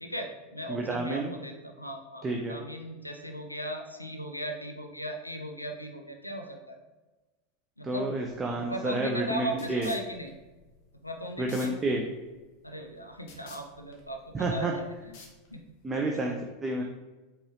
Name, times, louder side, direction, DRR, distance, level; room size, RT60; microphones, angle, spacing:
voice 1, 0.0-6.8 7.8-8.1 8.5-10.3 11.0-12.0 12.6-15.1 15.5-15.6 16.1-16.3, right 1 dB, 90° left, 3 dB, 0.4 m, -38 dB
voice 2, 0.7-1.3 2.2-2.6 7.8-9.9 11.4-12.1 14.3-14.7 15.8-16.8, right 2 dB, 20° right, 1 dB, 0.5 m, -30 dB
sound 1, 8.2-15.9, left 4 dB, 50° left, 0.8 m, -54 dB
4.5 x 2.9 x 3.2 m, 1.2 s
figure-of-eight pair, 85°, 0 cm